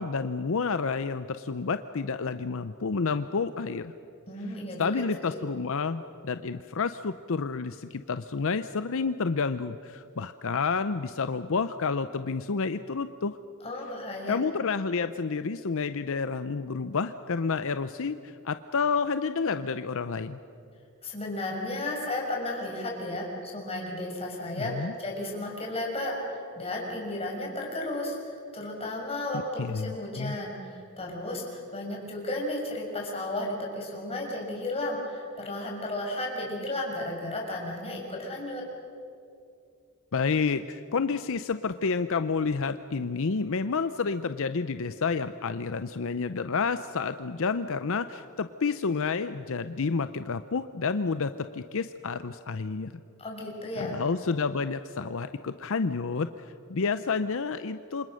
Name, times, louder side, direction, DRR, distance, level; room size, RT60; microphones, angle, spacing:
voice 1, 0.0-3.9 4.8-13.4 14.3-20.4 24.6-24.9 29.6-30.4 40.1-52.9 53.8-58.1, left 4 dB, 65° left, 11 dB, 0.7 m, -30 dB
voice 2, 4.3-5.4 13.6-14.4 21.0-38.6 53.2-54.0, left 1 dB, 30° left, -1 dB, 6.0 m, -34 dB
28.0 x 26.0 x 6.4 m, 2.6 s
head